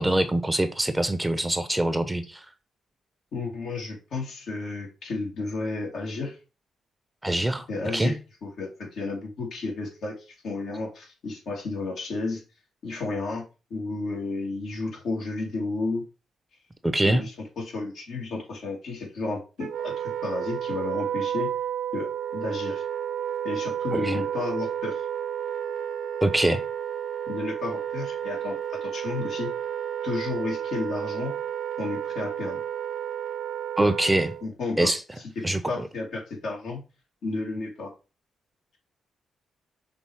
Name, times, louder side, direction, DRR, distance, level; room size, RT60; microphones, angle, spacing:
voice 1, 0.0-2.5 7.2-7.7 7.9-8.1 16.8-17.2 23.9-24.2 26.2-26.6 33.8-34.3 34.8-35.0 35.4-35.9, right 1 dB, 15° right, 0.9 m, -24 dB
voice 2, 3.3-6.3 7.7-8.2 8.4-10.1 10.4-12.4 12.8-13.4 13.7-16.0 17.0-21.5 21.9-22.8 23.4-25.0 27.3-29.5 30.0-31.3 31.8-32.6 34.4-34.9 35.7-36.8 37.2-37.9, left 3 dB, 70° left, 2.7 m, -32 dB
Wind instrument woodwind instrument, 19.6-34.5, right 9 dB, 75° right, 0.7 m, -31 dB
5.8 x 3.4 x 4.8 m
hypercardioid pair, 45°, 0 cm